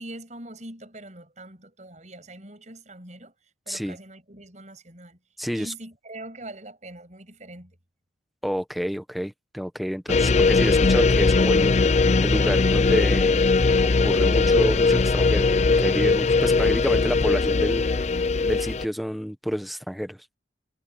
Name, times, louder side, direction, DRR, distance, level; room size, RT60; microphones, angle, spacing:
voice 1, 0.0-5.2 5.5-7.8, right 1 dB, 40° right, 7.7 m, -43 dB
voice 2, 5.4-5.7 8.4-13.4 13.8-18.0 18.4-20.2, equal, ahead, 1.2 m, -29 dB
sound 1, 10.1-18.9, left 4 dB, 35° left, 0.5 m, -20 dB
head